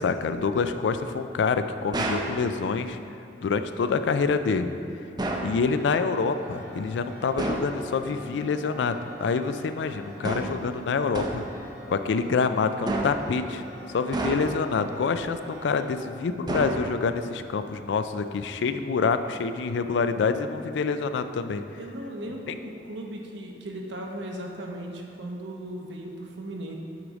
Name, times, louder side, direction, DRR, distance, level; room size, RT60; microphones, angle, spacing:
voice 1, 0.0-3.0 3.4-4.7 5.4-11.4 11.9-13.6 13.9-21.6 22.5-22.6, left 5 dB, 80° left, 10 dB, 0.3 m, -26 dB
sound 1, 1.9-2.4 5.2-5.6 7.4-7.8 10.2-10.7 11.1-11.5 12.9-13.3 14.1-14.7 16.5-17.1, right 2 dB, 25° right, 0.5 m, -30 dB
sound 2, 5.6-15.9, equal, 60° right, 1.3 m, -45 dB
voice 2, 21.8-26.7, right 1 dB, 85° right, 1 dB, 0.9 m, -37 dB
8.0 x 4.8 x 4.0 m, 2.7 s
head